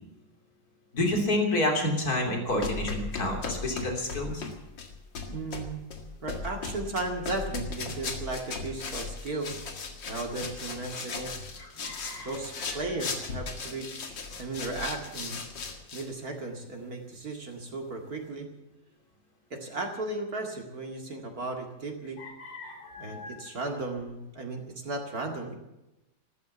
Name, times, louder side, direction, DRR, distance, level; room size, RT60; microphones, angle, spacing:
voice 1, 0.9-4.4 11.6-12.3 22.2-23.5, left 1 dB, 55° left, 2 dB, 3.7 m, -30 dB
sound 1, 2.5-16.1, left 4 dB, 80° left, 2.6 m, -37 dB
voice 2, 5.3-5.8 6.2-9.6 10.1-11.3 12.2-15.4 15.9-18.5 19.5-22.2 23.0-25.5, right 2 dB, 55° right, 2 dB, 2.6 m, -35 dB
14.5 x 13.5 x 6.9 m, 0.93 s
omnidirectional pair, 2.0 m